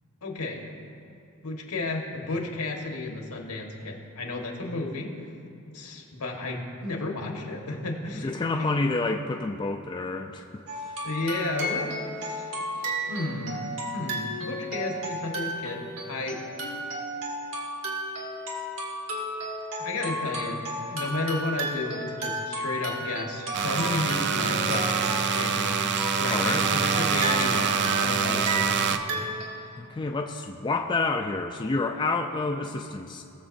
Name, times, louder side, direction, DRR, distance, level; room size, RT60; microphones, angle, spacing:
voice 1, 0.2-0.7 1.4-5.2 5.7-8.8 11.0-11.9 12.2-12.5 12.7-13.6 13.9-16.4 19.8-25.9 26.2-29.2, left 2 dB, 85° left, 1 dB, 1.4 m, -33 dB
voice 2, 8.2-10.4 10.7-10.9 26.3-26.7 29.8-33.2, left 3 dB, 20° left, 3 dB, 0.3 m, -29 dB
sound 1, 10.7-29.4, right 1 dB, 65° right, 1.6 m, -33 dB
sound 2, 23.5-29.0, right 6 dB, 50° right, 0.4 m, -26 dB
19.0 x 7.0 x 2.6 m, 2.7 s
head